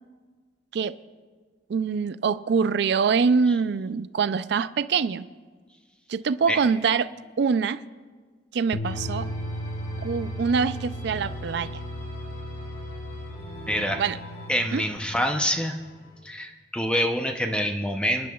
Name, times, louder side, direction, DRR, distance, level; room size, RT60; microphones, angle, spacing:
voice 1, 1.7-5.2 6.1-7.1 7.4-7.8 8.5-9.3 10.0-11.8 14.0-14.2 14.7-14.8, right 5 dB, 55° right, 14 dB, 0.4 m, -24 dB
sound 1, 8.7-15.0, equal, 85° left, 0.7 m, -37 dB
sound 2, 8.8-16.2, left 1 dB, 40° left, 4.7 m, -39 dB
voice 2, 13.7-14.0 14.5-15.8 16.2-18.3, equal, 5° left, 4 dB, 0.6 m, -26 dB
27.5 x 10.5 x 2.3 m, 1.5 s
head